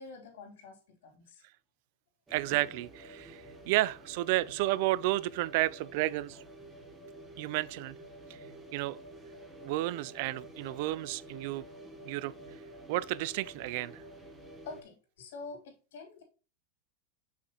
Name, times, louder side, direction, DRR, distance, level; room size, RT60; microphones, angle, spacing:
voice 1, 0.0-1.4 14.6-16.2, left 3 dB, 80° left, 2.9 m, -47 dB
sound 1, 2.3-14.8, right 1 dB, 10° right, 1.0 m, -50 dB
voice 2, 2.3-6.4 7.4-7.9 8.3-8.4 8.7-9.0 9.6-11.6 12.1-12.3 12.9-14.0, right 17 dB, 50° right, 0.3 m, -31 dB
6.7 x 5.8 x 2.9 m
supercardioid pair, 160°, 0 cm